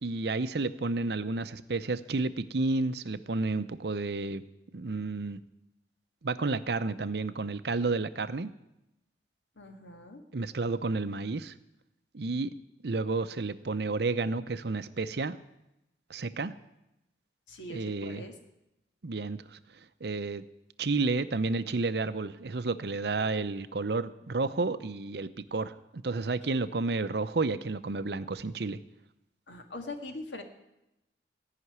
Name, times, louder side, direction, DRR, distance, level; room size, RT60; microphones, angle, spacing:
voice 1, 0.0-4.4 4.7-5.4 6.2-8.5 10.3-11.5 12.1-12.5 12.8-15.4 16.1-16.5 17.7-18.2 19.0-19.6 20.0-20.4 20.8-28.8, right 3 dB, 65° right, 13 dB, 0.6 m, -31 dB
voice 2, 9.6-10.2 17.5-18.3 29.5-30.4, left 1 dB, 85° left, 5 dB, 1.9 m, -42 dB
17.5 x 5.9 x 9.5 m, 0.91 s
head